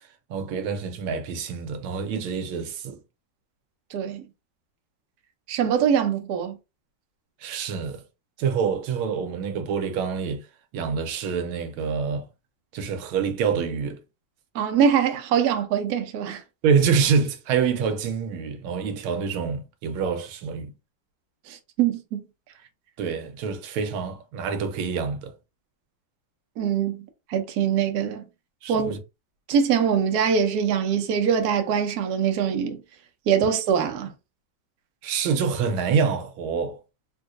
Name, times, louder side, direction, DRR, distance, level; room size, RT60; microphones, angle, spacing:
voice 1, 0.3-3.0 7.4-8.0 8.4-10.4 10.7-12.3 12.7-14.0 16.6-20.7 23.0-25.3 28.6-29.0 35.0-36.8, right 6 dB, 85° right, 1.5 m, -26 dB
voice 2, 3.9-4.2 5.5-6.6 14.5-16.4 21.5-22.2 26.6-27.0 27.3-28.3 28.7-28.9 29.5-32.8 33.3-34.1, right 7 dB, 65° right, 1.0 m, -23 dB
3.7 x 2.7 x 2.4 m
omnidirectional pair, 2.2 m